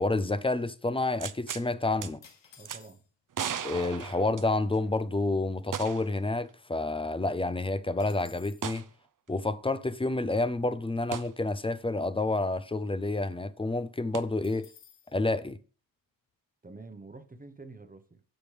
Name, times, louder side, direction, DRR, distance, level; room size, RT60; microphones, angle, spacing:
voice 1, 0.0-2.2 3.6-8.8 9.3-14.7 15.1-15.6, left 2 dB, 15° left, 0.4 m, -29 dB
sound 1, 1.2-1.7 2.0-2.1 2.7-2.8 3.3-4.9 5.7-6.2 6.5-6.6 8.6-8.9 11.1-11.3 14.1-14.2, right 8 dB, 45° right, 0.6 m, -36 dB
sound 2, 2.2-3.3 4.1-4.2 4.4-4.7 5.2-6.6 7.0-7.1 7.4-8.8 14.4-15.2, left 7 dB, 80° left, 1.3 m, -58 dB
voice 2, 2.6-3.0 16.6-18.2, right 3 dB, 20° right, 0.9 m, -48 dB
14.5 x 5.2 x 3.3 m
wide cardioid pair, 135°, 44 cm